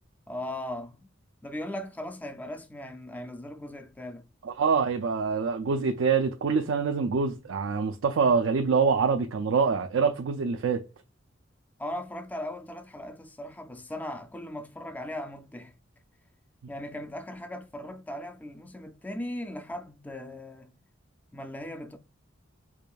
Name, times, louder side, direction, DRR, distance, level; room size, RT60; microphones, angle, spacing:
voice 1, 0.3-1.1 1.4-4.3 11.8-15.7 16.7-20.7 21.3-22.0, left 1 dB, 10° left, 0.4 m, -38 dB
voice 2, 4.4-10.8, right 5 dB, 80° right, 0.4 m, -25 dB
4.8 x 2.5 x 2.3 m
head